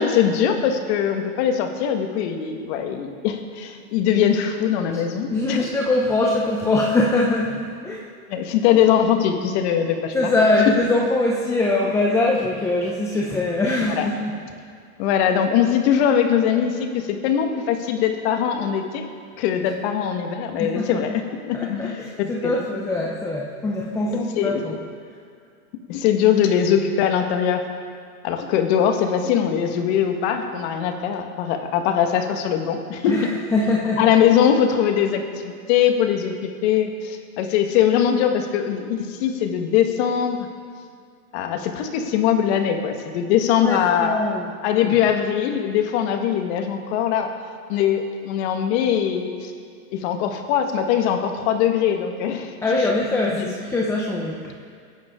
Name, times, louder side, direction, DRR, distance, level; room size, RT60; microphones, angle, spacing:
voice 1, 0.0-5.6 8.3-10.4 13.9-14.1 15.0-19.0 19.4-22.6 24.4-24.8 25.9-27.6 28.2-33.1 34.0-40.4 41.3-44.2 44.6-47.3 47.7-49.5 49.9-52.5 53.4-53.5, left 9 dB, 45° left, 5 dB, 1.6 m, -21 dB
voice 2, 5.3-8.1 10.1-14.3 20.6-21.0 21.5-24.7 33.1-34.1 43.6-44.5 44.8-45.0 52.6-54.5, left 2 dB, 5° left, -2 dB, 0.5 m, -22 dB
22.0 x 10.5 x 3.8 m, 2.2 s
hypercardioid pair, 135°, 46 cm